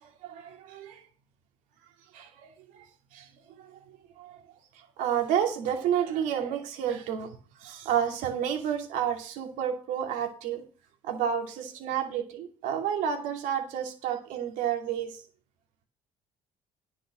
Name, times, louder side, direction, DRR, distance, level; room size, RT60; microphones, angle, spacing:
voice 1, 0.0-1.0 2.1-2.8 3.1-3.3 3.6-4.4 4.7-7.3 7.6-10.6 11.0-15.2, right 9 dB, 80° right, 4 dB, 2.5 m, -31 dB
10.0 x 5.9 x 7.6 m, 0.36 s
supercardioid pair, 80°, 13 cm